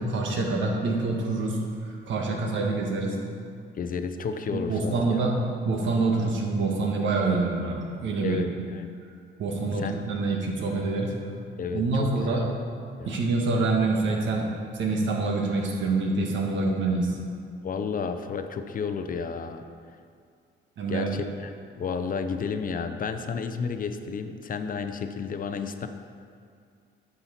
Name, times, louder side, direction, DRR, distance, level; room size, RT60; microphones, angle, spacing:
voice 1, 0.0-1.6 1.8-3.2 4.5-8.5 9.4-11.2 11.7-12.4 13.0-14.5 14.7-17.2 20.8-21.2, right 3 dB, 70° right, 0 dB, 1.4 m, -26 dB
voice 2, 3.8-5.4 8.2-8.9 9.8-10.0 11.6-12.6 13.0-13.2 17.6-19.6 20.9-25.9, left 5 dB, 45° left, 8 dB, 0.6 m, -32 dB
9.7 x 5.7 x 4.2 m, 2.3 s
cardioid pair, 90°, 20 cm